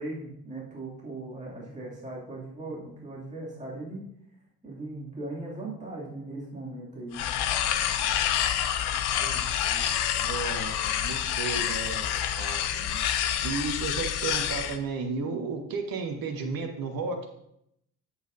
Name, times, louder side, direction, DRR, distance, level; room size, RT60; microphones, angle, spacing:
voice 1, 0.0-4.1 4.6-7.3, right 2 dB, 15° right, -5 dB, 2.5 m, -38 dB
sound 1, 7.1-14.8, left 10 dB, 55° left, 0.8 m, -28 dB
voice 2, 8.9-9.9 10.1-12.1 12.4-17.2, right 4 dB, 45° right, 3 dB, 1.5 m, -34 dB
11.0 x 7.8 x 2.7 m, 0.77 s
figure-of-eight pair, 45°, 48 cm